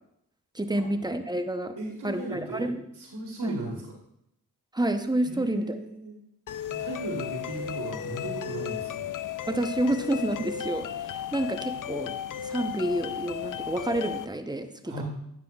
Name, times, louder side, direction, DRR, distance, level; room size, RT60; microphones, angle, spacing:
voice 1, 0.5-1.8 2.0-2.9 3.4-3.6 4.7-5.8 9.5-12.1 12.4-15.0, right 1 dB, 10° right, 8 dB, 0.8 m, -29 dB
voice 2, 1.8-2.7 2.9-3.9 5.2-6.1 6.7-9.1 14.8-15.0, right 2 dB, 80° right, -1 dB, 1.5 m, -37 dB
sound 1, 6.5-14.3, left 10 dB, 55° left, 0.5 m, -35 dB
9.4 x 7.2 x 2.4 m, 0.80 s
cardioid pair, 40°, 39 cm